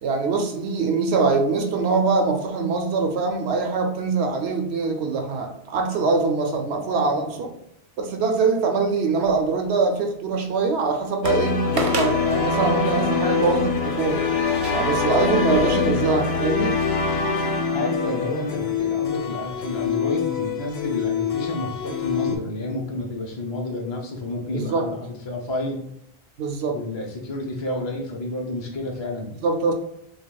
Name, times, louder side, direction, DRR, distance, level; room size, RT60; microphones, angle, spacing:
voice 1, 0.0-7.6 8.0-14.2 14.7-16.8 24.5-24.9 26.4-26.8 29.4-29.7, right 4 dB, 85° right, 4 dB, 0.9 m, -23 dB
sound 1, 9.2-9.8 10.3-10.4 11.2-11.4 11.8-12.2 13.0-13.1 14.5-16.4 16.8-16.9, right 2 dB, 40° right, 0.6 m, -33 dB
sound 2, 11.2-22.4, left 5 dB, 80° left, 0.9 m, -24 dB
voice 2, 17.7-25.8 26.7-29.3, left 2 dB, 30° left, -1 dB, 0.6 m, -30 dB
6.2 x 2.3 x 2.3 m, 0.77 s
omnidirectional pair, 1.1 m